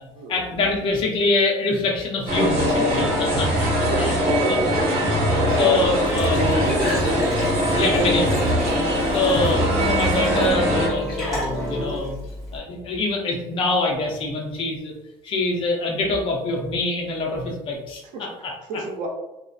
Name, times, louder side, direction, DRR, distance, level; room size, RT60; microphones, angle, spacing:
voice 1, 0.0-3.7 3.9-4.6 5.4-6.4 7.7-8.3 9.1-12.2 12.5-14.9 15.2-18.8, left 2 dB, 40° left, -1 dB, 0.7 m, -25 dB
sound 1, 2.3-10.9, equal, 55° right, 1.2 m, -22 dB
voice 2, 3.8-4.7 6.0-7.2 8.0-8.3 18.7-19.1, right 1 dB, 80° right, 0 dB, 0.7 m, -28 dB
sound 2, 4.5-12.0, equal, 15° right, 0.6 m, -31 dB
Glass / Trickle dribble / Fill (with liquid), 5.8-12.6, left 1 dB, 5° left, 1.4 m, -33 dB
2.7 x 2.4 x 2.4 m, 0.94 s
cardioid pair, 145°, 13 cm